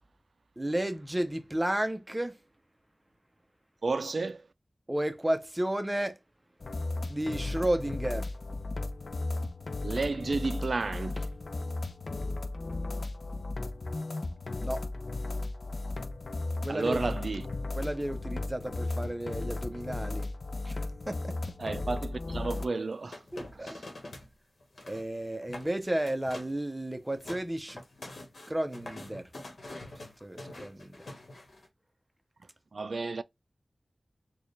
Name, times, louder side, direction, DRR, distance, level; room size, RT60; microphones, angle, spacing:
voice 1, 0.6-2.4 4.9-6.2 7.1-8.3 14.6-14.8 16.6-17.0 17.7-20.3 20.7-20.8 21.1-21.4 23.3-23.7 24.9-27.8 28.5-29.3 30.2-30.9, right 1 dB, 20° right, 0.7 m, -32 dB
voice 2, 3.8-4.4 9.8-11.3 16.7-17.5 21.6-23.2 23.5-23.8 32.7-33.2, right 3 dB, 70° right, 0.4 m, -32 dB
sound 1, 6.6-22.7, left 2 dB, 65° left, 0.4 m, -35 dB
sound 2, 22.5-24.3 24.6-25.1 25.4-25.7 26.1-26.6 27.0-31.7, left 2 dB, 80° left, 1.2 m, -45 dB
4.3 x 2.3 x 3.2 m
wide cardioid pair, 70°, 0 cm